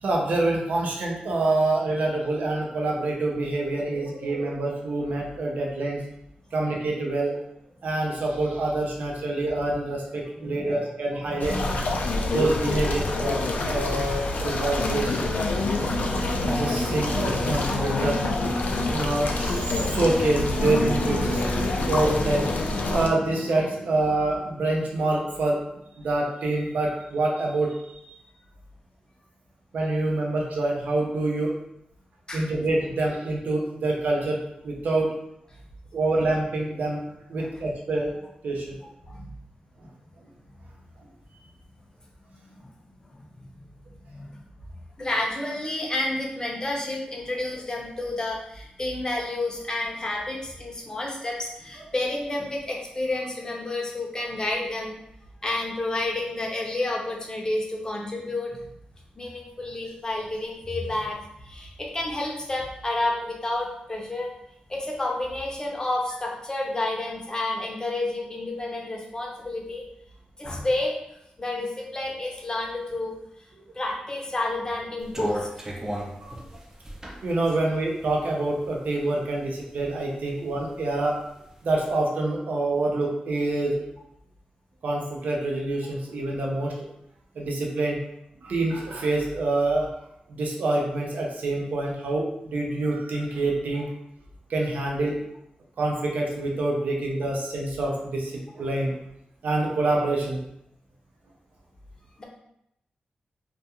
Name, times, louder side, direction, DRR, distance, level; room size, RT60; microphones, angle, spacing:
voice 1, 0.0-6.0 6.5-7.4 7.8-11.6 12.3-13.4 13.7-15.3 16.5-18.2 18.9-21.4 21.9-22.4 22.9-25.6 26.0-28.2 29.7-31.5 32.3-34.4 34.6-35.1 35.9-37.0 37.3-38.8 76.2-76.3 77.2-81.1 81.6-83.8 84.8-86.9 87.4-88.0 88.4-89.9 90.3-92.3 92.5-93.9 94.5-95.1 95.8-99.0 99.4-100.4, right 2 dB, 75° right, -1 dB, 0.5 m, -26 dB
voice 2, 10.3-10.7 11.3-12.1 15.2-15.3 32.3-32.5 37.4-37.5 39.1-39.3 42.4-42.7 44.1-44.4 45.0-54.9 55.4-58.6 59.2-61.2 61.4-64.3 64.7-69.8 70.4-70.9 71.4-73.2 73.7-75.5 102.2-102.3, left 2 dB, 25° left, -1 dB, 0.6 m, -30 dB
sound 1, 11.4-23.1, left 2 dB, 70° left, 0.3 m, -27 dB
Singing / Musical instrument, 15.4-25.5, left 1 dB, 85° left, 0.7 m, -33 dB
sound 2, 75.0-79.0 79.4-80.4 80.8-81.8, right 1 dB, 20° right, 0.4 m, -35 dB
2.2 x 2.2 x 2.8 m, 0.79 s
wide cardioid pair, 95°, 3 cm